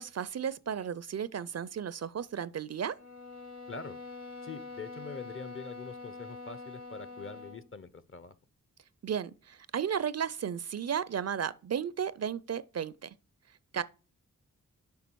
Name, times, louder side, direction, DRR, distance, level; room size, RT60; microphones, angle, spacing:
voice 1, 0.0-3.0 9.0-13.1 13.7-13.8, right 8 dB, 50° right, 0.4 m, -34 dB
sound 1, 2.9-7.7, left 3 dB, 55° left, 1.9 m, -45 dB
voice 2, 4.4-8.3, left 4 dB, 40° left, 0.7 m, -44 dB
6.9 x 4.9 x 4.5 m
cardioid pair, 40°, 33 cm